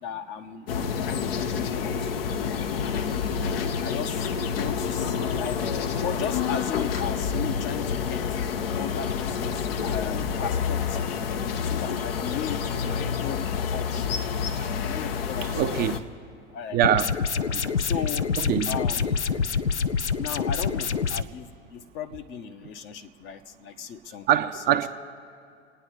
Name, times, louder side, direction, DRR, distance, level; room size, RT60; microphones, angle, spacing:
voice 1, 0.0-3.0 3.8-4.3 4.6-5.7 6.0-8.3 8.8-11.1 11.6-14.3 14.8-15.9 16.5-16.8 17.8-18.3 18.7-19.2 20.2-24.9, left 8 dB, 35° left, 1.0 m, -36 dB
sound 1, 0.7-16.0, left 6 dB, 60° left, 1.0 m, -28 dB
voice 2, 15.4-15.9 16.7-17.1 17.5-17.6 18.4-18.8 19.5-19.6 24.3-24.9, right 12 dB, 30° right, 0.6 m, -24 dB
sound 2, 16.8-21.2, left 6 dB, 85° left, 0.6 m, -26 dB
28.0 x 9.7 x 4.5 m
figure-of-eight pair, 90°, 34 cm